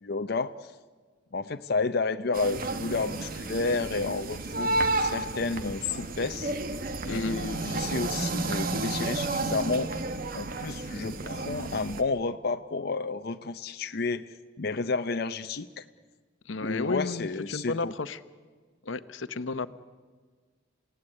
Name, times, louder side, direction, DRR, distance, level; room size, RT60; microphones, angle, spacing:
voice 1, 0.0-0.7 1.3-6.5 7.1-9.9 10.3-15.8 16.6-17.9, left 3 dB, 55° left, 8 dB, 0.6 m, -31 dB
sound 1, 2.3-12.0, right 2 dB, 50° right, 1.3 m, -32 dB
voice 2, 7.1-7.4 16.4-18.2 18.8-19.7, left 3 dB, 80° left, 12 dB, 0.9 m, -33 dB
29.0 x 16.5 x 9.8 m, 1.5 s
head